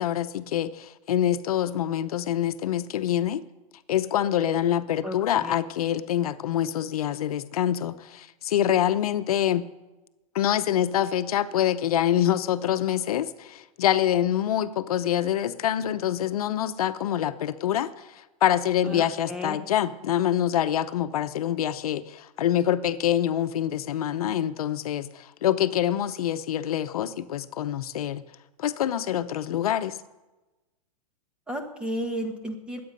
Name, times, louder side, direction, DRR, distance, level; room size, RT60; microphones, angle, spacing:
voice 1, 0.0-3.4 3.9-9.6 10.3-18.1 18.4-28.2 28.6-30.0, left 11 dB, 75° left, 11 dB, 0.8 m, -25 dB
voice 2, 5.0-5.5 18.8-19.6 31.5-32.8, equal, 5° right, 4 dB, 1.3 m, -33 dB
21.0 x 8.6 x 5.3 m, 1.1 s
supercardioid pair, 155°, 19 cm